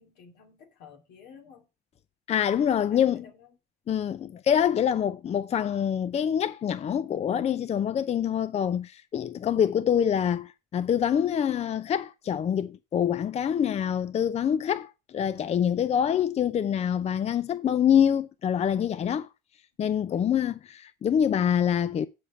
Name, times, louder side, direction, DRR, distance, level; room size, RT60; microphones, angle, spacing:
voice 1, 0.0-1.7 2.7-3.6 9.5-9.8 20.1-20.4, left 5 dB, 85° left, 2.6 m, -52 dB
voice 2, 2.3-3.2 3.9-19.3 19.8-22.1, left 9 dB, 40° left, 0.5 m, -25 dB
8.7 x 5.0 x 7.0 m
cardioid pair, 110°, 17 cm